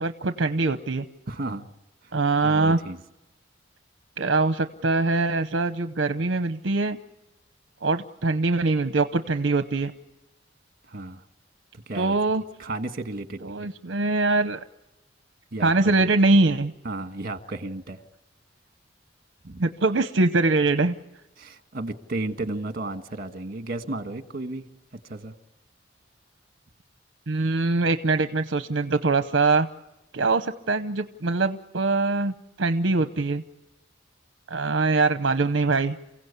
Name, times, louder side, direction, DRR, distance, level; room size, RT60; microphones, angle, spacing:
voice 1, 0.0-1.0 2.1-2.8 4.2-7.0 7.8-9.9 11.9-12.4 13.4-14.6 15.6-16.7 19.6-21.0 27.3-29.7 30.1-33.4 34.5-36.0, right 3 dB, 65° right, 9 dB, 0.8 m, -23 dB
voice 2, 1.3-1.7 2.0-2.1 2.4-3.0 10.9-11.2 11.9-12.2 12.6-13.7 15.5-15.9 16.8-18.0 19.4-19.6 21.4-24.6 25.0-25.3, right 2 dB, 50° right, 8 dB, 1.5 m, -33 dB
29.0 x 16.5 x 8.3 m, 0.96 s
head